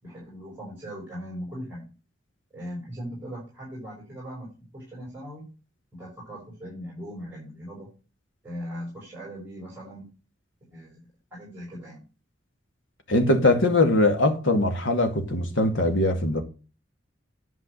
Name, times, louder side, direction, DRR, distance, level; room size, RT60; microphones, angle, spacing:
voice 1, 0.0-1.8 2.5-5.4 5.9-7.9 8.4-10.1 10.7-12.0, equal, 10° right, 5.5 m, -39 dB
voice 2, 13.1-16.4, left 2 dB, 80° left, 2.2 m, -21 dB
11.0 x 5.3 x 6.6 m
head